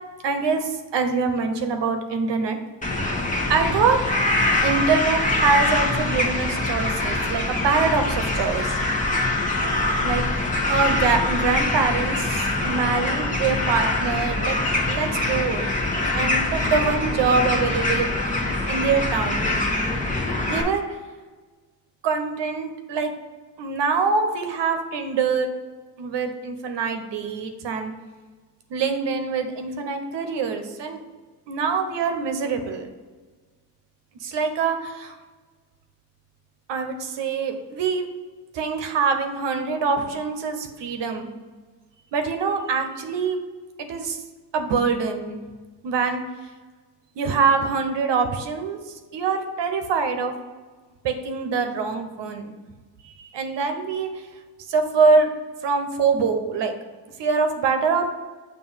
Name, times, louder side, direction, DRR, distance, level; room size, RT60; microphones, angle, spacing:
voice 1, 0.2-2.6 3.5-4.0 4.6-8.7 10.0-10.2 10.7-14.6 14.9-15.6 16.1-18.1 18.7-19.6 20.4-20.8 22.0-23.1 23.6-25.5 26.0-27.9 28.7-31.0 31.5-32.9 34.2-35.1 36.7-38.1 38.5-41.3 42.1-43.4 43.8-44.2 44.5-45.4 45.8-46.2 47.2-48.8 49.1-50.3 51.0-52.5 53.0-54.1 54.7-55.3 55.6-56.7 57.2-58.1, right 5 dB, 75° right, 6 dB, 0.9 m, -24 dB
sound 1, 2.8-20.6, left 2 dB, 20° left, 1.1 m, -24 dB
7.0 x 2.8 x 5.5 m, 1.4 s
cardioid pair, 80°, 42 cm